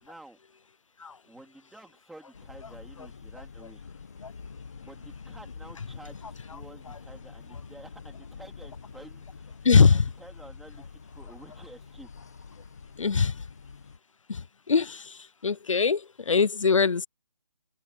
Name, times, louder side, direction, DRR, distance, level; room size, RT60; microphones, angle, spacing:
voice 1, 0.0-0.4 1.2-3.8 4.8-9.5 9.9-12.1, right 2 dB, ahead, 2.7 m, -50 dB
sound 1, 2.3-14.0, left 5 dB, 30° left, 1.8 m, -46 dB
voice 2, 9.6-10.1 13.0-13.4 14.3-17.1, left 5 dB, 80° left, 0.6 m, -22 dB
open air
hypercardioid pair, 175°, 16 cm